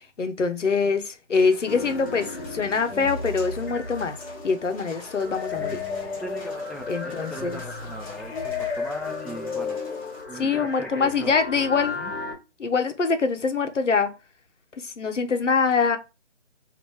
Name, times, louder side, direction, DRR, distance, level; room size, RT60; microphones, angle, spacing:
voice 1, 0.2-4.2 4.4-5.8 6.9-7.6 8.3-8.4 10.3-12.0 12.6-14.1 14.8-16.0, left 5 dB, 85° left, 1.1 m, -24 dB
sound 1, 1.3-10.2, left 1 dB, 30° left, 1.8 m, -47 dB
sound 2, 1.7-12.3, left 4 dB, 50° left, 1.5 m, -34 dB
voice 2, 6.2-9.8 10.3-11.3 12.0-12.1, equal, ahead, 0.3 m, -39 dB
5.5 x 2.9 x 3.1 m
hypercardioid pair, 180°, 36 cm